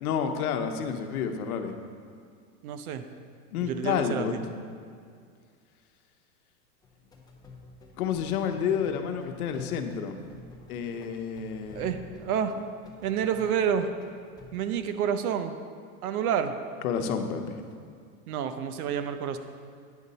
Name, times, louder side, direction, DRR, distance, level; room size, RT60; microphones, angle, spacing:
voice 1, 0.0-1.8 3.5-4.4 8.0-10.2 10.7-11.9 16.8-17.7, left 7 dB, 75° left, 6 dB, 0.9 m, -30 dB
voice 2, 2.6-3.1 3.6-4.4 11.7-12.5 13.0-13.9 14.5-15.5 16.0-16.5 18.3-19.4, right 8 dB, 75° right, 9 dB, 0.8 m, -29 dB
sound 1, 6.8-14.6, left 2 dB, 10° left, 0.5 m, -51 dB
9.4 x 6.6 x 4.1 m, 2.2 s
supercardioid pair, 140°, 44 cm